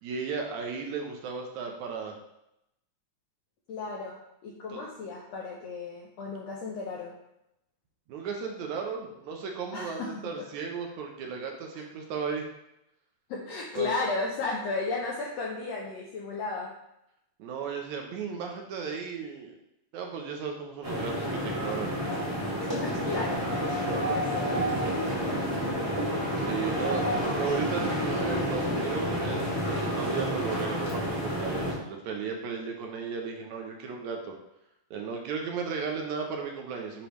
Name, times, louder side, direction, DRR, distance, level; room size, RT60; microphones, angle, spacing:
voice 1, 0.0-2.2 4.7-4.8 8.1-12.5 13.8-13.9 17.4-19.5 19.9-22.1 26.4-34.3 34.9-37.1, right 5 dB, 75° right, 2 dB, 1.9 m, -35 dB
voice 2, 3.7-7.2 9.7-10.4 11.7-11.8 13.3-16.7 22.6-25.5, left 3 dB, 75° left, -3 dB, 1.6 m, -35 dB
sound 1, 20.8-31.7, equal, 15° right, 1.7 m, -29 dB
9.8 x 3.4 x 3.1 m, 0.82 s
omnidirectional pair, 3.7 m